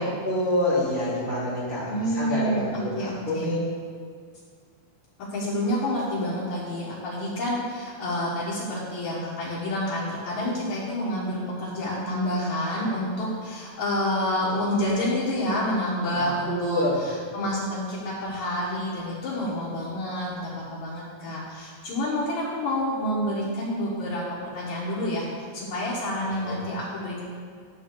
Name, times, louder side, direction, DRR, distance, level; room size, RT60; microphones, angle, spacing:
voice 1, 0.2-3.6 16.5-16.9 26.4-26.6, left 1 dB, 25° right, -10 dB, 1.1 m, -27 dB
voice 2, 1.9-3.5 5.2-25.2 25.5-27.2, left 1 dB, 60° left, -8 dB, 2.4 m, -28 dB
10.5 x 3.9 x 6.6 m, 2.1 s
omnidirectional pair, 4.1 m